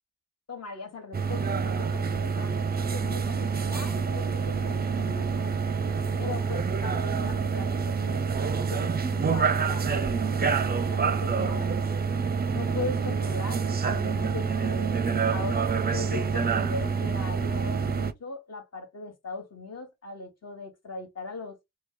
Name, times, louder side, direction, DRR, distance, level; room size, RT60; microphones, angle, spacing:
voice 1, 0.5-5.6 6.2-11.7 12.5-15.0 15.3-21.6, left 3 dB, 45° left, 1.2 m, -39 dB
sound 1, 1.1-18.1, right 5 dB, 30° right, 0.5 m, -27 dB
3.0 x 2.2 x 3.6 m
cardioid pair, 50°, 34 cm